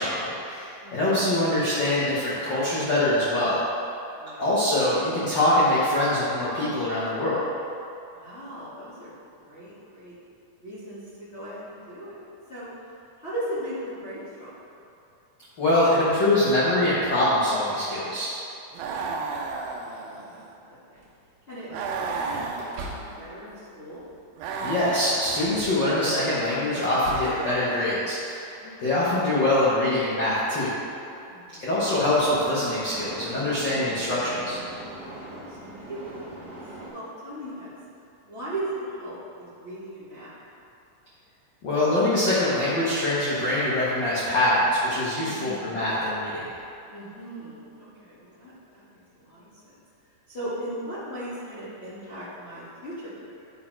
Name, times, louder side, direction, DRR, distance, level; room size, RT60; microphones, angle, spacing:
voice 1, 0.0-3.6 4.4-7.4 15.6-18.4 24.6-28.5 28.8-30.8 31.6-34.6 41.6-46.5, left 1 dB, 85° left, -9 dB, 1.0 m, -24 dB
voice 2, 0.8-1.4 4.1-4.5 8.1-9.1 9.4-10.1 10.6-12.2 12.5-12.7 13.2-14.5 18.7-19.4 20.2-20.4 20.7-21.0 21.5-24.0 28.6-28.9 31.3-31.7 35.2-36.2 36.9-37.7 38.2-40.3 45.2-45.8 46.9-49.7 50.3-53.5, right 1 dB, 50° left, -12 dB, 0.7 m, -38 dB
sound 1, 18.7-20.5 21.7-23.3 24.4-25.7 27.1-28.2, right 4 dB, 90° right, 2.3 m, -33 dB
sound 2, 21.0-21.4 22.3-23.5 23.9-24.2 24.9-25.9 26.3-27.4, right 2 dB, 70° right, 1.6 m, -41 dB
sound 3, 31.7-36.9, right 1 dB, 50° right, 2.0 m, -41 dB
10.0 x 4.3 x 4.5 m, 2.7 s
omnidirectional pair, 4.0 m